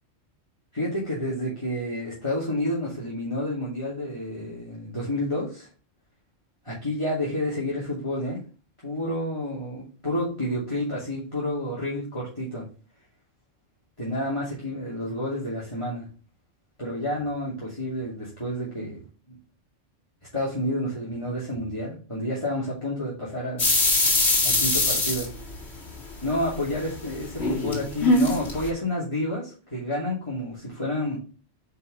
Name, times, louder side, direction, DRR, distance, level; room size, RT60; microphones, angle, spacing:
voice 1, 0.7-5.7 6.6-8.4 8.8-12.6 14.0-16.1 16.8-19.0 19.3-19.4 20.3-23.7 24.4-25.3 26.2-31.2, left 1 dB, 25° left, -7 dB, 2.7 m, -29 dB
sound 1, 23.6-26.0 26.4-28.7, left 2 dB, 60° left, 2.3 m, -22 dB
9.4 x 4.8 x 3.2 m, 0.37 s
omnidirectional pair, 1.3 m